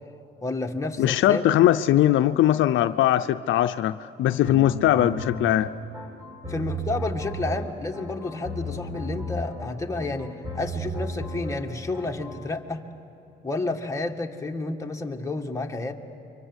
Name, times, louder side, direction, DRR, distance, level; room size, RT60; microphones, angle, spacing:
voice 1, 0.4-1.5 6.5-12.8 13.4-15.9, left 2 dB, 15° left, 2 dB, 2.0 m, -30 dB
voice 2, 1.0-5.7, left 12 dB, 75° left, 11 dB, 0.6 m, -20 dB
sound 1, 4.4-12.4, right 1 dB, 20° right, 6.8 m, -34 dB
29.5 x 24.5 x 8.1 m, 2.8 s
cardioid pair, 90°, 20 cm